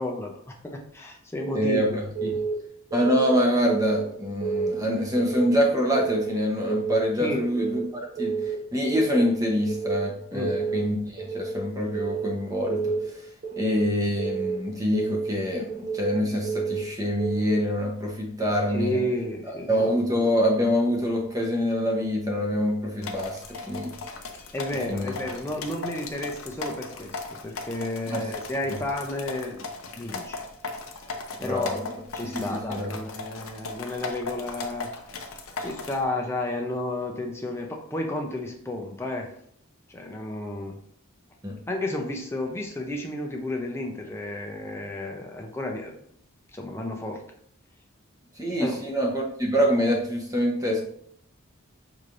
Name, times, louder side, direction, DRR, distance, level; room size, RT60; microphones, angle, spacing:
voice 1, 0.0-2.0 7.2-7.5 10.3-10.6 18.7-19.9 24.5-29.7 29.9-30.4 31.4-31.9 32.1-35.2 35.6-39.3 39.9-40.8 41.7-46.0 46.5-47.2 48.6-48.8, left 1 dB, 10° left, 1 dB, 0.5 m, -32 dB
Keyboard (musical) / Alarm, 1.4-1.8 2.2-2.5 2.9-3.3 3.7-4.0 4.4-4.8 5.2-5.5 5.9-6.3 6.7-7.0 7.4-7.8 8.2-8.6 8.9-9.3 9.7-10.1 10.4-10.8 11.2-11.6 11.9-12.3 12.7-13.1 13.4-13.8 14.2-14.6 14.9-15.3 15.7-16.1 16.4-16.8 17.2-17.6, right 5 dB, 45° right, 0.8 m, -30 dB
voice 2, 1.5-2.3 2.9-13.0 13.6-19.0 19.7-23.9 24.9-25.2 28.1-28.2 31.4-31.9 32.2-33.0 41.4-41.6 48.4-50.8, equal, 15° right, 0 dB, 0.8 m, -25 dB
sound 1, 23.0-36.0, left 3 dB, 75° left, 0.6 m, -37 dB
5.6 x 3.2 x 2.5 m, 0.66 s
head